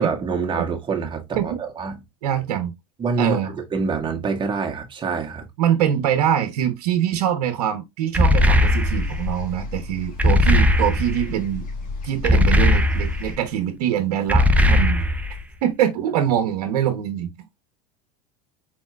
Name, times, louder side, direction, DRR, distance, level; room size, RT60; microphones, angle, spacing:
voice 1, 0.0-2.0 3.0-5.4, right 4 dB, 25° right, 1.6 m, -25 dB
voice 2, 2.2-2.7 3.2-3.5 5.6-11.7 12.0-15.0 15.6-17.3, right 10 dB, 80° right, 0.9 m, -23 dB
sound 1, 8.1-9.2 10.2-11.3 12.2-13.3 14.3-15.4, left 1 dB, 5° right, 0.6 m, -18 dB
sound 2, 8.3-13.4, left 2 dB, 45° left, 1.9 m, -33 dB
4.3 x 4.3 x 2.3 m
supercardioid pair, 105°, 19 cm